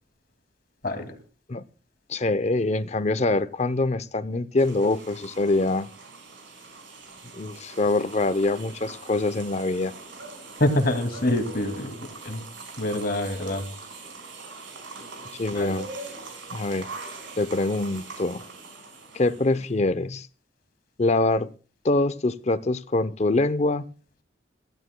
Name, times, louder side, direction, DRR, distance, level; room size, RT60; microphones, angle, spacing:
voice 1, 0.8-1.1 10.6-11.9 12.2-12.4 12.8-13.7 15.5-15.8, left 1 dB, 50° left, 2.3 m, -25 dB
voice 2, 2.1-5.9 7.3-9.9 15.3-15.9 16.5-16.9 17.4-18.4 19.1-20.3 21.0-21.5 21.8-23.9, left 2 dB, 35° left, 0.6 m, -24 dB
sound 1, 4.6-19.7, right 3 dB, 85° right, 5.1 m, -42 dB
25.0 x 16.0 x 2.2 m
head